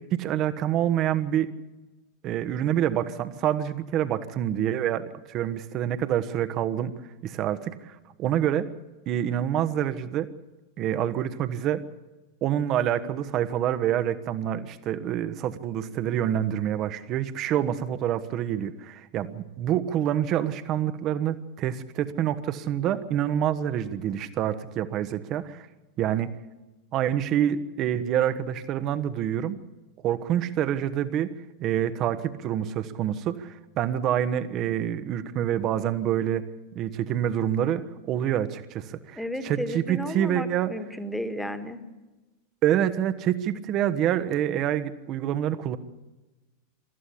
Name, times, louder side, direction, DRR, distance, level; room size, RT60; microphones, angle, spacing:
voice 1, 0.0-1.5 2.2-6.9 7.2-8.7 9.1-10.3 10.8-11.8 12.4-25.7 26.0-26.4 26.9-29.6 30.0-31.3 31.6-36.5 36.7-40.7 42.6-45.8, right 10 dB, 35° right, 11 dB, 1.2 m, -27 dB
voice 2, 39.2-41.8, equal, 5° left, 9 dB, 1.8 m, -33 dB
25.0 x 14.0 x 8.6 m, 1.2 s
figure-of-eight pair, 90°, 0 cm